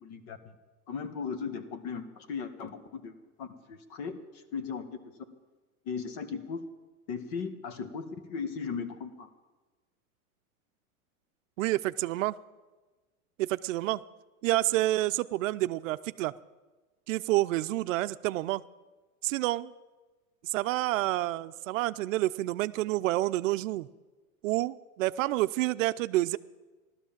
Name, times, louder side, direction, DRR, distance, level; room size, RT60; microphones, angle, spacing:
voice 1, 0.0-0.5 0.9-3.1 3.4-4.2 4.5-4.9 5.8-6.6 7.1-9.3, left 6 dB, 50° left, 9 dB, 1.6 m, -37 dB
voice 2, 11.6-12.4 13.4-14.0 14.4-16.3 17.1-18.6 19.2-19.7 20.4-23.9 24.4-26.4, right 17 dB, 65° right, 13 dB, 0.6 m, -28 dB
15.5 x 12.5 x 7.3 m, 1.2 s
supercardioid pair, 145°, 42 cm